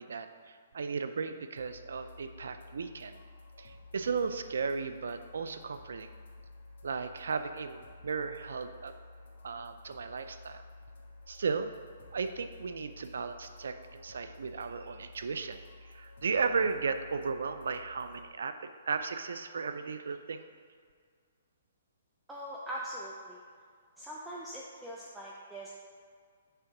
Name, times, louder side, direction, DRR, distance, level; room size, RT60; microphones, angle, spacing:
voice 1, 0.0-3.2 3.6-6.1 6.8-8.9 9.4-10.6 11.3-11.7 12.1-18.6 18.9-20.4, right 5 dB, 80° right, 9 dB, 0.4 m, -35 dB
sound 1, 1.6-18.3, left 2 dB, 65° left, 1.6 m, -52 dB
voice 2, 22.3-23.4 24.0-25.7, right 1 dB, 5° right, -5 dB, 0.5 m, -42 dB
6.7 x 3.6 x 5.8 m, 2.1 s
hypercardioid pair, 160°, 0 cm